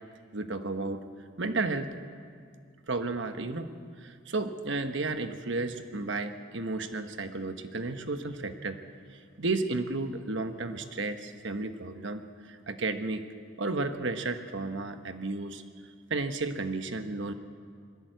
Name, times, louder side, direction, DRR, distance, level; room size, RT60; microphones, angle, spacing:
voice 1, 0.3-1.0 1.4-1.9 2.9-3.7 4.0-8.8 9.4-13.2 13.6-15.6 16.1-17.3, right 3 dB, 70° right, 8 dB, 1.2 m, -33 dB
21.0 x 16.0 x 8.0 m, 2.1 s
head